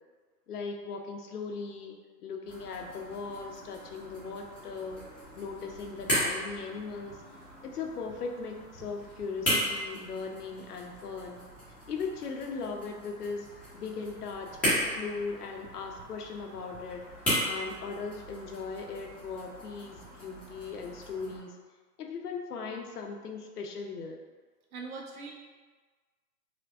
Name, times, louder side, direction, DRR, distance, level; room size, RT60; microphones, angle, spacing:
voice 1, 0.5-5.0 5.4-7.2 7.6-11.4 11.9-14.5 14.8-17.2 17.4-21.6 22.0-24.2, left 4 dB, 70° left, 2 dB, 0.7 m, -38 dB
sound 1, 2.4-21.4, equal, 5° left, 0.6 m, -37 dB
voice 2, 24.7-25.3, right 4 dB, 60° right, 1 dB, 0.8 m, -41 dB
4.9 x 2.2 x 2.3 m, 1.4 s
hypercardioid pair, 130°, 48 cm